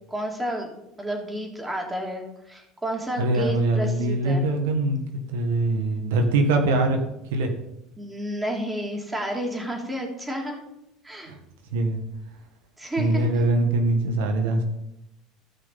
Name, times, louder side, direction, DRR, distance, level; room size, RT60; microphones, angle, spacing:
voice 1, 0.1-0.7 1.0-4.4 8.0-10.6 11.0-11.3 12.8-13.4, equal, 10° right, 0 dB, 3.0 m, -31 dB
voice 2, 3.2-7.0 7.3-7.5 11.7-12.0 13.0-14.6, right 2 dB, 85° right, 4 dB, 1.6 m, -23 dB
16.5 x 5.7 x 4.1 m, 0.85 s
supercardioid pair, 110°, 0 cm